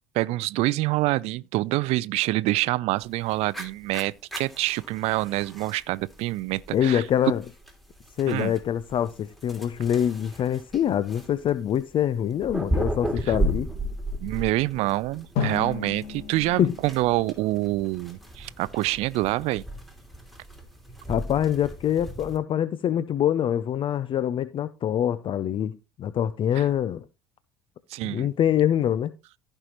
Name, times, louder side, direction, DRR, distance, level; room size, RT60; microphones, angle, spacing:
voice 1, 0.1-7.0 8.3-8.5 14.2-19.6 26.6-26.7 27.9-28.3, right 18 dB, 60° right, 0.4 m, -26 dB
sound 1, 3.0-22.4, right 1 dB, ahead, 2.7 m, -35 dB
voice 2, 6.7-7.4 8.2-13.7 16.6-16.7 21.1-27.0 28.0-29.1, left 10 dB, 45° left, 0.5 m, -25 dB
Drum, 15.4-18.3, left 6 dB, 65° left, 1.9 m, -34 dB
15.0 x 5.5 x 3.0 m
hypercardioid pair, 65°, 12 cm